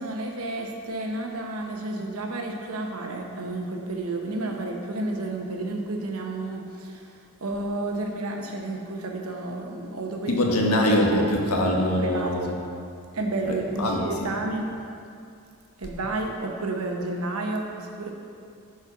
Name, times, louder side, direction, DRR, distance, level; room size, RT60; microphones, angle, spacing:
voice 1, 0.0-7.1 7.4-10.7 12.0-12.6 13.1-14.7 15.8-18.1, right 2 dB, 70° right, 2 dB, 1.1 m, -31 dB
voice 2, 10.3-12.5 13.4-14.3, left 1 dB, 85° left, 0 dB, 1.3 m, -23 dB
9.4 x 4.5 x 5.8 m, 2.4 s
head